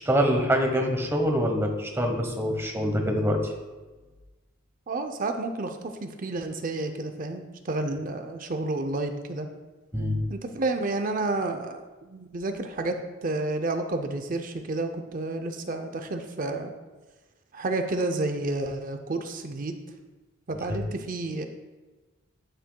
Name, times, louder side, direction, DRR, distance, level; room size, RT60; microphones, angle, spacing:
voice 1, 0.0-3.5 9.9-10.2 20.7-20.8, equal, 10° right, 3 dB, 1.0 m, -25 dB
voice 2, 4.9-9.5 10.3-16.7 17.5-19.7 20.5-21.5, right 2 dB, 40° right, 7 dB, 0.5 m, -30 dB
12.0 x 6.6 x 2.3 m, 1.2 s
head